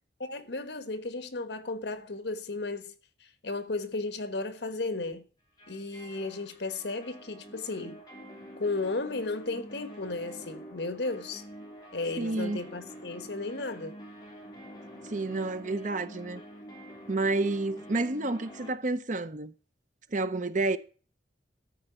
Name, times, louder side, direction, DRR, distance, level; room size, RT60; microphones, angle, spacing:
voice 1, 0.2-2.9 3.4-5.2 5.7-8.0 8.6-11.4 11.9-14.0, left 3 dB, 70° left, 1.4 m, -34 dB
sound 1, 5.6-18.7, equal, 25° left, 3.1 m, -47 dB
voice 2, 12.2-12.6 15.1-16.4 17.1-19.5 20.1-20.8, right 2 dB, 45° right, 0.7 m, -30 dB
13.5 x 4.7 x 8.6 m
head